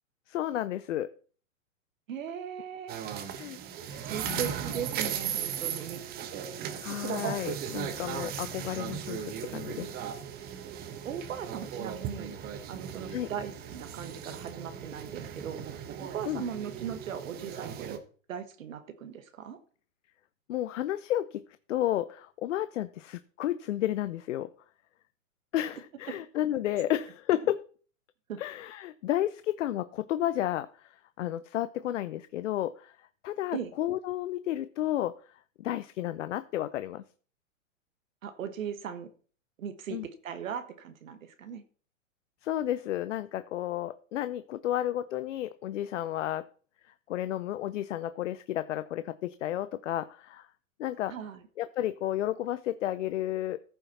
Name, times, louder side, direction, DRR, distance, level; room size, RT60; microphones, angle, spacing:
voice 1, 0.3-1.1 3.4-3.6 3.9-4.4 6.8-9.9 13.1-13.3 16.3-16.4 20.5-24.5 25.5-27.6 28.4-30.9 31.2-32.9 33.2-35.2 35.6-37.0 39.9-40.1 42.4-46.4 47.1-50.5 50.8-51.1 51.6-53.6, left 13 dB, 65° left, 14 dB, 0.6 m, -32 dB
voice 2, 2.1-3.0 4.0-6.0 11.0-12.3 12.7-15.6 16.0-18.0 18.3-19.6 28.3-28.4 33.5-33.7 38.2-39.1 39.6-41.6 51.1-51.4, right 8 dB, 75° right, 9 dB, 1.4 m, -38 dB
sound 1, 2.9-18.0, right 9 dB, 25° right, 1.0 m, -37 dB
14.5 x 5.9 x 4.2 m, 0.42 s
hypercardioid pair, 130°, 40 cm